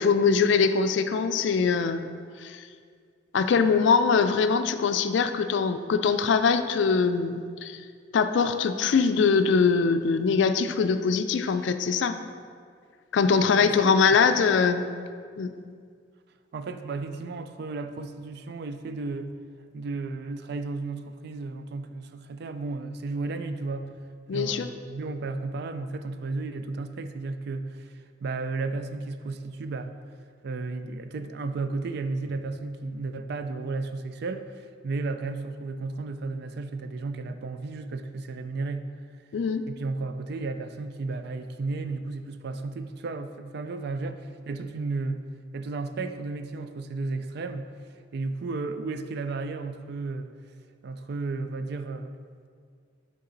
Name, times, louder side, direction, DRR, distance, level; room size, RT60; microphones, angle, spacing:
voice 1, 0.0-2.1 2.4-2.6 3.3-7.8 8.1-12.2 13.1-14.9 15.4-15.5 24.3-24.7 39.3-39.7, left 5 dB, 70° left, 9 dB, 0.4 m, -22 dB
voice 2, 13.6-14.3 16.5-23.9 24.3-29.9 30.4-38.9 39.7-45.2 45.5-50.3 50.8-52.1, right 3 dB, 60° right, 9 dB, 0.4 m, -33 dB
6.8 x 5.1 x 3.9 m, 2.1 s
head